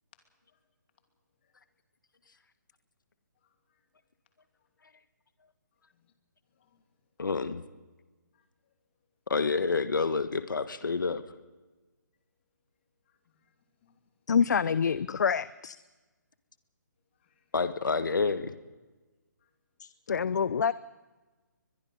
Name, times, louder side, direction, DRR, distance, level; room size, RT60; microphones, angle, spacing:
voice 1, 3.4-3.8 5.9-6.1 6.5-6.8 8.3-8.7 13.1-13.5 13.8-14.0 17.2-17.5 19.4-19.5, left 8 dB, 35° left, 5 dB, 2.8 m, -72 dB
voice 2, 7.2-7.6 9.3-11.2 17.5-18.5, left 4 dB, 85° left, 11 dB, 1.5 m, -28 dB
voice 3, 14.3-15.8 19.8-20.7, left 6 dB, 65° left, 17 dB, 0.6 m, -27 dB
22.5 x 22.0 x 5.5 m, 1.2 s
hypercardioid pair, 160°, 10 cm